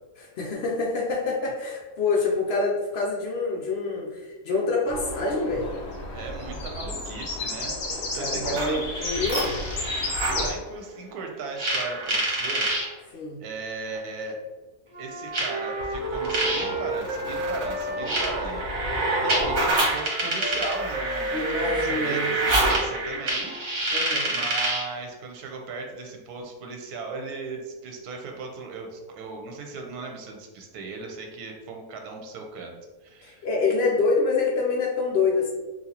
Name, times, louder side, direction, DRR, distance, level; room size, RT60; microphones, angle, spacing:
voice 1, 0.2-5.7 7.9-9.6 13.1-13.4 21.3-22.3 23.9-24.4 33.2-35.5, left 3 dB, 70° left, -1 dB, 0.6 m, -26 dB
sound 1, 4.9-10.5, left 2 dB, 50° left, 0.9 m, -32 dB
voice 2, 6.1-8.8 10.4-12.7 13.4-14.4 15.0-18.9 19.2-23.5 24.3-32.7 33.0-33.4, right 4 dB, 85° right, 3 dB, 1.1 m, -37 dB
sound 2, 8.4-10.4 11.6-12.8 13.9-14.0 15.3-24.9, right 2 dB, 65° right, 1.4 m, -27 dB
Wind instrument woodwind instrument, 14.9-19.0 19.3-23.5, right 2 dB, 35° right, 0.5 m, -33 dB
4.0 x 2.5 x 2.7 m, 1.3 s
omnidirectional pair, 1.6 m